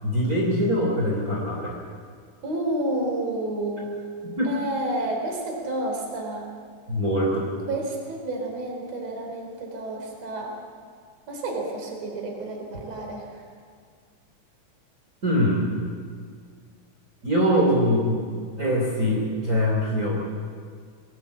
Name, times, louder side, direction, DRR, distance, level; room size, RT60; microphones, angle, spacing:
voice 1, 0.0-1.8 4.4-4.5 6.9-7.5 12.7-12.8 15.2-15.7 17.2-18.3 18.6-20.2, equal, 25° right, -3 dB, 3.5 m, -23 dB
voice 2, 2.4-4.0 4.4-6.5 7.7-10.6 11.3-13.4 17.4-17.7, right 2 dB, 50° right, 1 dB, 4.8 m, -30 dB
23.5 x 17.5 x 8.3 m, 2.1 s
omnidirectional pair, 3.8 m